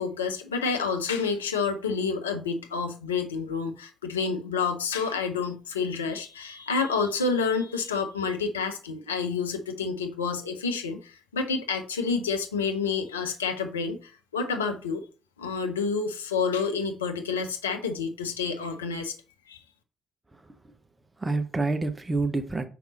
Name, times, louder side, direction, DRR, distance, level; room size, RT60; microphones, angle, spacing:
voice 1, 0.0-15.0 15.4-19.1 19.5-19.6, left 5 dB, 80° left, 0.6 m, -29 dB
voice 2, 20.3-20.7 21.2-22.7, right 3 dB, 20° right, 0.9 m, -28 dB
5.2 x 4.7 x 4.0 m
figure-of-eight pair, 45°, 0 cm